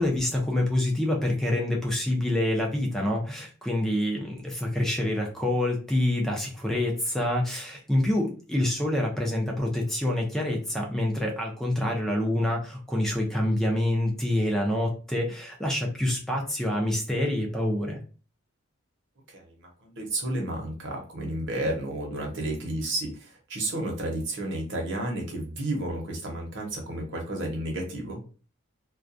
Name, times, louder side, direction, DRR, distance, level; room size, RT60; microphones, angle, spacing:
voice 1, 0.0-18.0, left 1 dB, ahead, 0 dB, 0.5 m, -27 dB
voice 2, 19.3-28.2, right 1 dB, 60° right, 0 dB, 0.9 m, -32 dB
2.3 x 2.2 x 2.6 m, 0.37 s
head